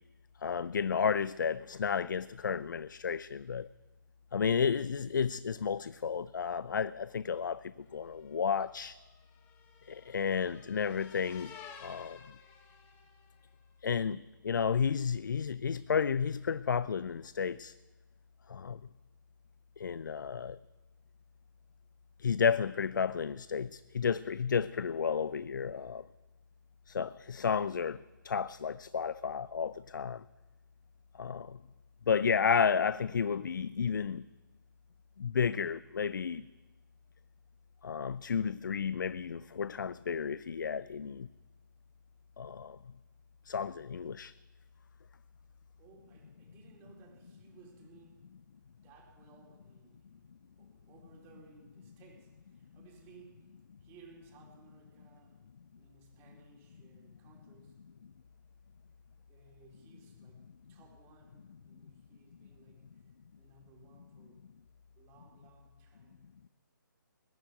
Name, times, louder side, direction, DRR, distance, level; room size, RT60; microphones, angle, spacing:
voice 1, 0.4-3.7 4.3-9.0 9.9-11.5 11.8-12.2 13.8-17.7 18.5-18.9 19.8-20.6 22.2-26.1 26.9-28.0 28.2-30.2 31.1-31.6 32.1-34.3 35.2-36.5 37.8-41.3 42.4-42.8 43.5-44.3, left 6 dB, 65° left, 0.5 m, -32 dB
sound 1, 8.1-13.5, left 7 dB, 20° left, 1.3 m, -54 dB
voice 2, 45.8-48.3 48.8-55.4 55.7-57.8 59.3-60.4 60.7-63.0 63.4-64.4 65.0-66.2, right 3 dB, 20° right, 4.2 m, -60 dB
21.0 x 7.0 x 9.3 m
figure-of-eight pair, 145°, 11 cm